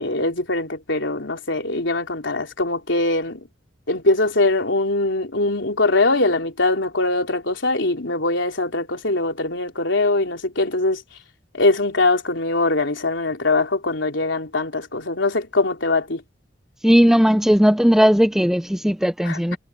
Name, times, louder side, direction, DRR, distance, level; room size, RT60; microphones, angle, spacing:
voice 1, 0.0-3.4 3.9-11.0 11.5-16.2 19.3-19.4, left 2 dB, 75° left, 3.5 m, -22 dB
voice 2, 16.8-19.6, equal, ahead, 0.6 m, -16 dB
head